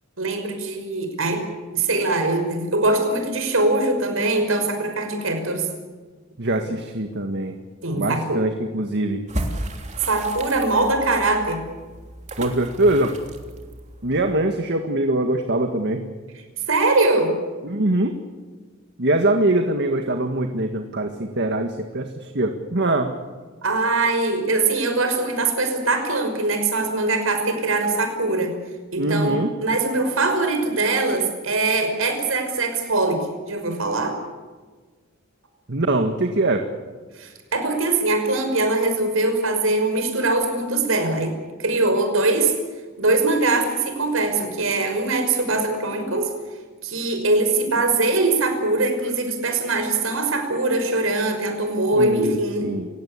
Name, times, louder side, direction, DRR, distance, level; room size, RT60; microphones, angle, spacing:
voice 1, 0.2-1.4 1.7-5.7 7.8-8.4 10.0-11.6 16.7-17.3 23.6-28.6 28.9-29.4 29.6-33.2 33.5-34.2 37.2-41.3 41.6-42.5 43.0-46.3 46.8-52.7, right 2 dB, 90° right, 6 dB, 5.7 m, -22 dB
voice 2, 6.4-7.6 7.9-9.3 12.4-13.2 14.0-16.1 17.6-18.1 19.0-23.1 29.0-29.5 35.7-36.6 52.0-52.4 52.6-52.9, right 2 dB, 60° right, 5 dB, 1.8 m, -22 dB
sound 1, 9.3-14.4, right 1 dB, 35° right, 3.2 m, -34 dB
29.0 x 17.0 x 8.5 m, 1.4 s
head